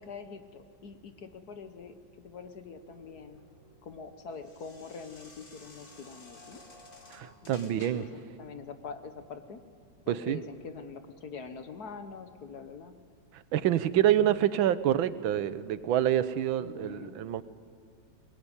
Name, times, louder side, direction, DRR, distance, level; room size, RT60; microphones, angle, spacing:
voice 1, 0.0-3.4 3.8-6.6 7.4-9.6 10.1-12.9 16.6-17.2, left 5 dB, 55° left, 9 dB, 1.6 m, -44 dB
sound 1, 2.4-8.3, left 2 dB, 25° left, 2.3 m, -54 dB
voice 2, 7.1-8.0 10.1-10.4 13.3-17.4, right 11 dB, 90° right, 15 dB, 1.6 m, -27 dB
21.0 x 20.5 x 9.9 m, 2.2 s
omnidirectional pair, 2.1 m